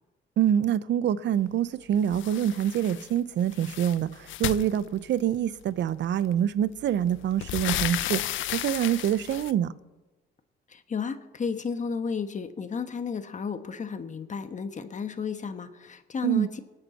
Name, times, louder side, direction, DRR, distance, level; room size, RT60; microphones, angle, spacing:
voice 1, 0.4-9.7 16.2-16.5, right 10 dB, 65° right, 0.7 m, -26 dB
sound 1, 2.1-3.1 3.4-5.4 6.3-6.4 6.8-9.5, left 14 dB, 75° left, 0.5 m, -33 dB
voice 2, 10.7-16.5, left 6 dB, 40° left, 1.2 m, -33 dB
25.0 x 8.9 x 4.2 m
cardioid pair, 90°, 20 cm